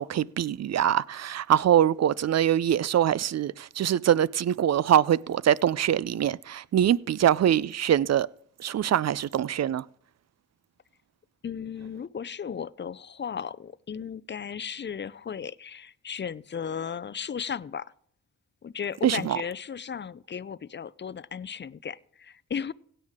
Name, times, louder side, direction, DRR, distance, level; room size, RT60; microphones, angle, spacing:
voice 1, 0.0-8.3 8.6-9.8 19.0-19.4, right 10 dB, 50° right, 0.5 m, -23 dB
voice 2, 11.4-17.9 18.6-22.7, left 7 dB, 35° left, 0.5 m, -35 dB
17.0 x 9.1 x 3.6 m
supercardioid pair, 40°, 33 cm